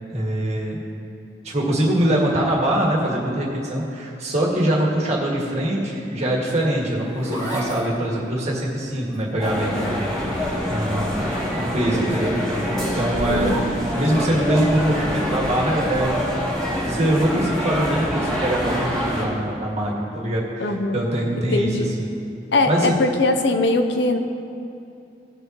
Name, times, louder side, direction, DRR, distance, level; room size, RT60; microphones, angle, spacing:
voice 1, 0.1-0.8 1.4-10.0 10.7-11.2 11.5-12.4 13.0-13.5 13.9-16.2 16.8-21.7 22.0-22.1 22.7-23.0, right 1 dB, 40° right, -4 dB, 2.0 m, -23 dB
Zipper (clothing), 6.6-11.1 11.4-14.1 15.7-16.0, equal, 25° left, 2.2 m, -35 dB
sound 1, 9.4-19.2, equal, ahead, 2.5 m, -25 dB
voice 2, 13.3-13.6 20.6-21.0 21.3-21.9 22.5-24.2, left 2 dB, 75° left, 6 dB, 0.7 m, -21 dB
17.5 x 6.8 x 3.0 m, 2.7 s
head